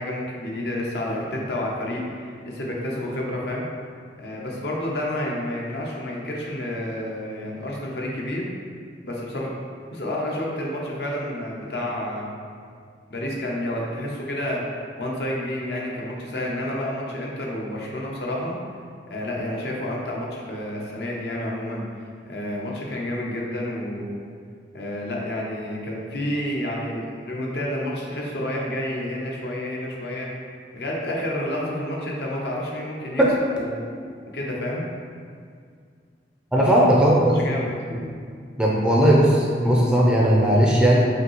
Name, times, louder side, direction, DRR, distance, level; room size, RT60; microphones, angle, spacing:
voice 1, 0.0-3.7 4.2-8.5 9.0-9.5 9.9-12.3 13.1-18.6 19.1-21.9 22.3-24.2 24.7-30.3 30.7-33.2 33.5-33.8 34.3-34.8 36.6-36.7 37.3-37.7, left 1 dB, 65° left, -2 dB, 0.7 m, -29 dB
voice 2, 36.5-37.4 38.6-41.1, equal, 5° right, -4 dB, 0.4 m, -17 dB
5.0 x 2.7 x 3.0 m, 2.1 s
head